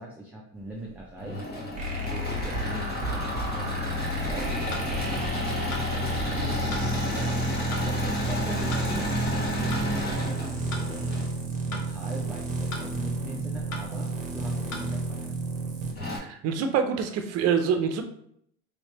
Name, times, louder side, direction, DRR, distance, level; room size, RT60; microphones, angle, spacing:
voice 1, 0.0-1.4 2.0-5.2 6.3-11.0 11.6-15.4, right 1 dB, 5° right, -3 dB, 0.6 m, -41 dB
Engine / Mechanisms, 1.0-11.3 12.9-13.6 14.2-14.3 14.6-14.7 15.6-15.7 16.0-16.2, left 1 dB, 30° left, 1.2 m, -32 dB
sound 1, 1.8-15.9, right 1 dB, 25° right, 0.9 m, -31 dB
sound 2, 4.7-4.9 5.7-5.9 6.7-6.9 7.7-7.9 8.7-8.9 9.7-9.9 10.7-10.9 11.7-11.9 12.7-12.9 13.7-13.9 14.7-14.9, left 2 dB, 75° left, 1.0 m, -37 dB
voice 2, 16.2-18.0, right 7 dB, 50° right, 6 dB, 0.6 m, -25 dB
3.3 x 3.1 x 3.1 m, 0.68 s
supercardioid pair, 100°, 32 cm